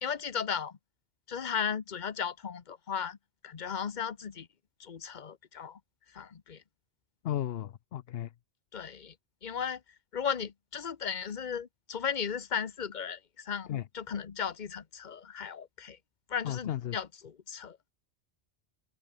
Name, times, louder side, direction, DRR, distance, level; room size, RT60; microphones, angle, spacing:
voice 1, 0.0-0.8 1.3-3.2 3.4-4.5 4.8-5.8 6.1-6.6 8.7-9.1 9.4-9.8 10.1-16.0 16.3-17.8, left 7 dB, 45° left, 1.1 m, -36 dB
voice 2, 7.2-8.3 13.7-13.8 16.5-17.0, left 11 dB, 65° left, 0.8 m, -34 dB
open air
omnidirectional pair, 1.1 m